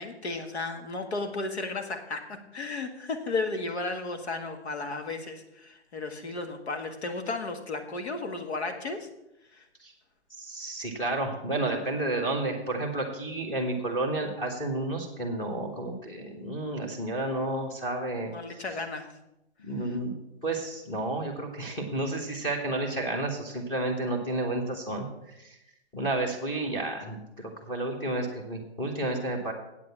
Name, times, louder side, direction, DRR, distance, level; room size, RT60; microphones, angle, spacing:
voice 1, 0.0-9.1 9.5-9.6 18.3-19.1 19.8-20.0, left 3 dB, 70° left, 6 dB, 1.9 m, -34 dB
voice 2, 10.4-18.3 19.6-20.1 20.4-25.0 25.9-29.5, right 2 dB, 15° left, 2 dB, 1.4 m, -31 dB
8.5 x 7.6 x 7.2 m, 0.86 s
hypercardioid pair, 155°, 34 cm